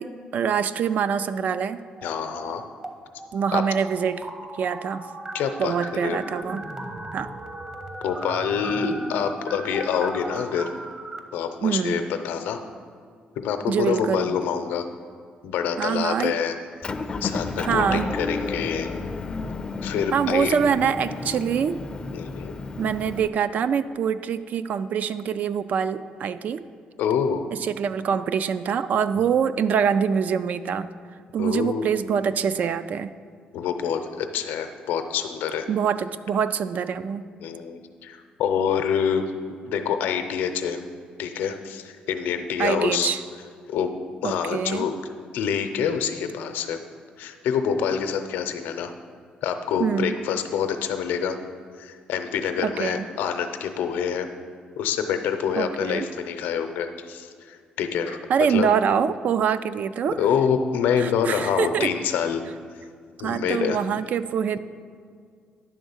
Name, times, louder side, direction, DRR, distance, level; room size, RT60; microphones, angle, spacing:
voice 1, 0.0-1.8 3.3-4.3 4.5-5.1 5.6-6.7 7.1-7.3 11.6-12.0 13.7-14.4 15.8-16.3 17.6-18.2 20.1-21.8 22.8-26.6 27.5-30.9 31.3-33.1 35.7-37.3 42.6-43.2 44.2-44.9 49.8-50.1 52.6-53.0 55.6-56.1 58.3-60.2 61.0-61.9 63.2-64.6, right 7 dB, 55° right, 13 dB, 0.3 m, -25 dB
voice 2, 2.0-2.6 3.5-3.6 5.3-5.7 6.0-6.2 8.0-10.7 11.3-12.6 13.4-14.9 15.4-16.5 17.2-18.9 19.8-20.6 22.1-22.5 27.0-27.4 29.2-29.3 31.4-31.9 33.5-35.7 37.4-39.3 39.7-40.8 41.2-43.1 43.7-45.0 45.3-46.8 47.2-48.9 49.4-51.4 51.8-54.3 54.8-58.2 58.5-58.7 60.2-62.4 63.2-63.8, left 7 dB, 90° left, 7 dB, 0.6 m, -26 dB
sound 1, 2.0-2.9 3.2-11.2, right 1 dB, 20° right, 0.8 m, -37 dB
Motor vehicle (road) / Engine, 16.8-23.3, left 3 dB, 30° left, 0.4 m, -32 dB
10.5 x 3.7 x 7.1 m, 2.1 s
cardioid pair, 110°, 3 cm